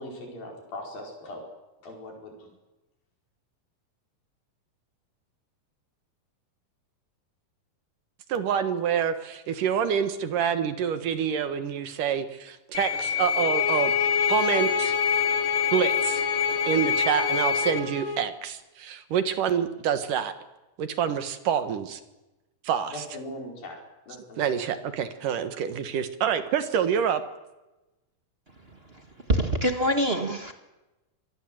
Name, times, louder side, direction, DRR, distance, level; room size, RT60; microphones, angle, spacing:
voice 1, 0.0-1.4 1.8-2.5 22.9-23.8 24.1-24.5, left 1 dB, 85° left, 1 dB, 6.7 m, -40 dB
voice 2, 8.3-13.9 14.3-15.0 15.7-16.2 16.7-20.3 20.8-22.0 22.6-22.9 24.4-27.2, right 8 dB, 70° right, 10 dB, 3.0 m, -27 dB
sound 1, 12.7-17.8, left 8 dB, 55° left, 1.8 m, -26 dB
sound 2, 13.3-18.3, left 5 dB, 35° left, 1.1 m, -30 dB
voice 3, 29.3-30.5, right 1 dB, 35° right, 6 dB, 1.0 m, -24 dB
26.0 x 20.0 x 7.8 m, 1.0 s
omnidirectional pair, 4.0 m